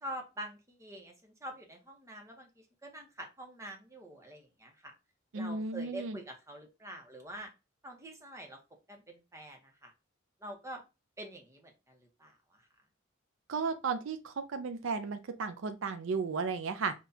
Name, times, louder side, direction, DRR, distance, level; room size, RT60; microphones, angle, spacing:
voice 1, 0.0-2.5 2.8-4.9 5.3-7.5 7.8-8.6 8.9-9.9 10.4-10.8 11.2-12.6, right 1 dB, 15° right, 0.9 m, -46 dB
voice 2, 5.3-6.2 13.5-16.9, right 4 dB, 70° right, 0.5 m, -34 dB
5.9 x 2.4 x 2.7 m
head